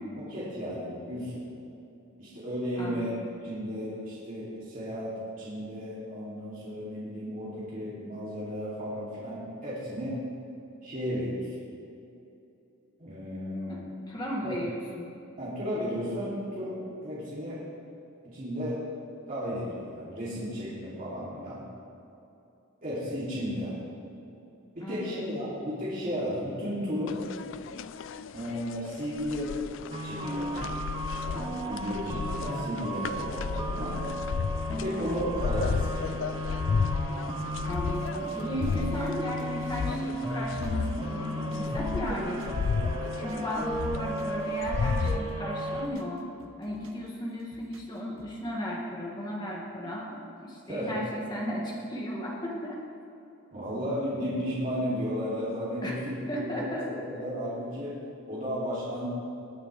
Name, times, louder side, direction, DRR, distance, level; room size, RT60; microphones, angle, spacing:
voice 1, 0.2-1.5 2.2-3.2 3.4-10.2 10.8-11.6 13.0-13.9 14.4-14.6 15.4-17.6 18.2-18.9 19.3-21.6 22.8-23.7 24.7-27.2 28.3-29.7 30.0-30.7 31.2-34.0 34.7-36.5 38.7-38.9 50.7-51.0 53.5-59.1, equal, 40° right, -9 dB, 2.8 m, -34 dB
voice 2, 2.8-3.3 13.5-13.8 14.1-15.1 24.8-25.4 37.6-42.4 43.2-46.2 46.6-52.8 55.8-56.0 56.3-56.9, equal, 20° left, -3 dB, 2.0 m, -35 dB
sound 1, 27.1-45.2, left 5 dB, 60° left, 0.4 m, -33 dB
sound 2, 29.9-45.9, right 1 dB, 25° right, 0.9 m, -34 dB
sound 3, 37.7-41.8 42.1-43.5 43.8-45.3 45.6-47.1 47.4-48.4, right 2 dB, 70° right, 1.0 m, -53 dB
19.5 x 9.5 x 3.3 m, 2.8 s
head